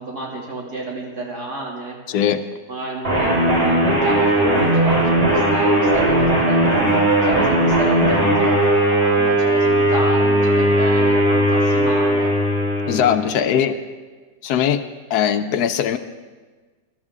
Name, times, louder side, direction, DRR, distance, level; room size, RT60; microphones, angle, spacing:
voice 1, 0.0-2.2 2.7-6.8 7.2-12.3 13.2-13.8, right 2 dB, 65° right, -3 dB, 3.2 m, -30 dB
voice 2, 2.1-2.4 12.9-13.8 14.4-14.8 15.1-16.0, left 9 dB, 75° left, 10 dB, 1.1 m, -20 dB
sound 1, 3.0-13.3, right 1 dB, 30° right, 4.2 m, -17 dB
18.5 x 12.0 x 3.7 m, 1.4 s
omnidirectional pair, 1.8 m